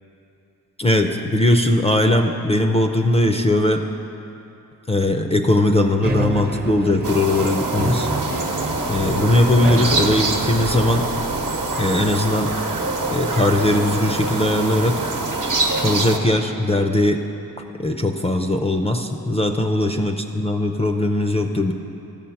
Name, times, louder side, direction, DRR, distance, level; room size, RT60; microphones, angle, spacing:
voice 1, 0.8-3.9 4.9-8.1 8.9-11.1 11.8-12.6 13.1-15.0 15.8-17.3 17.8-21.7, left 1 dB, 20° left, 5 dB, 0.4 m, -19 dB
sound 1, 6.0-11.1, right 2 dB, 30° right, 0.7 m, -29 dB
sound 2, 7.0-16.2, right 2 dB, 65° right, 1.0 m, -25 dB
sound 3, 9.0-12.9, right 5 dB, 85° right, 0.7 m, -33 dB
12.0 x 6.9 x 5.7 m, 2.9 s
wide cardioid pair, 115°, 34 cm